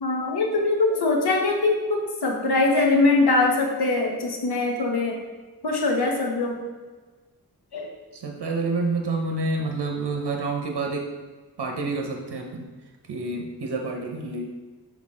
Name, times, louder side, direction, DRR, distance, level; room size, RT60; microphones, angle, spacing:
voice 1, 0.0-5.2 5.6-6.6 7.7-7.9, left 3 dB, 75° left, 0 dB, 1.1 m, -22 dB
voice 2, 8.1-11.1 11.6-12.7 13.1-14.5, right 3 dB, 85° right, 2 dB, 0.8 m, -28 dB
6.1 x 4.7 x 3.7 m, 1.3 s
wide cardioid pair, 85°, 39 cm